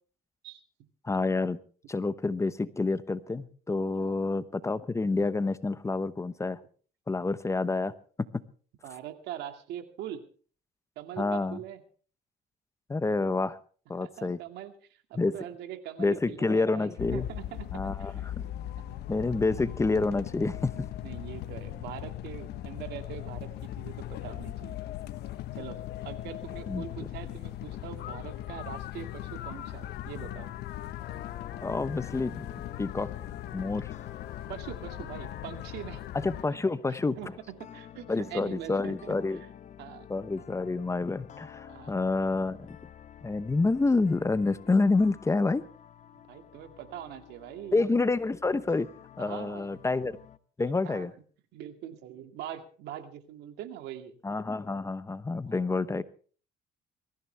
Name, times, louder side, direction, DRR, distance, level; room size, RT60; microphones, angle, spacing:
voice 1, 1.0-1.6 1.9-6.6 7.1-7.9 8.2-8.4 11.2-11.6 12.9-13.6 13.9-14.4 15.1-15.4 16.0-17.2 17.7-18.4 19.1-20.9 26.7-27.1 31.6-33.1 33.5-33.9 36.2-37.2 38.1-39.4 40.1-42.8 43.2-45.6 47.7-48.9 49.2-50.1 50.6-51.1 54.2-56.0, left 3 dB, 15° left, 14 dB, 0.9 m, -28 dB
voice 2, 8.8-10.2 11.0-11.8 14.0-18.3 18.8-19.4 21.0-24.8 25.5-30.5 34.5-36.0 36.9-39.5 39.8-40.1 41.7-41.9 46.3-47.8 49.2-49.7 50.8-51.1 51.5-54.2 55.5-55.6, right 11 dB, 85° right, 7 dB, 2.3 m, -43 dB
sound 1, 17.0-36.4, left 13 dB, 75° left, 1.1 m, -39 dB
sound 2, 31.0-50.4, left 9 dB, 45° left, 1.1 m, -50 dB
22.5 x 14.5 x 3.4 m, 0.42 s
cardioid pair, 110°, 17 cm